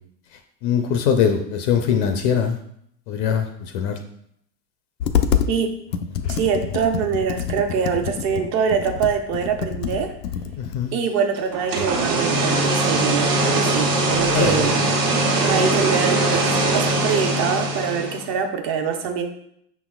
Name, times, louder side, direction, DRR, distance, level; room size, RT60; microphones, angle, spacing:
voice 1, 0.6-2.6 3.1-4.0 10.6-10.9 14.3-14.7, left 7 dB, 45° left, 6 dB, 0.5 m, -22 dB
Computer keyboard, 5.0-5.5 5.9-10.8, left 8 dB, 85° left, 0.6 m, -26 dB
voice 2, 6.3-10.1 10.9-14.7 15.4-19.2, right 6 dB, 35° right, 5 dB, 0.6 m, -24 dB
sound 1, 11.5-18.3, right 2 dB, 75° right, 1.3 m, -21 dB
5.5 x 4.1 x 2.3 m, 0.71 s
hypercardioid pair, 115°, 48 cm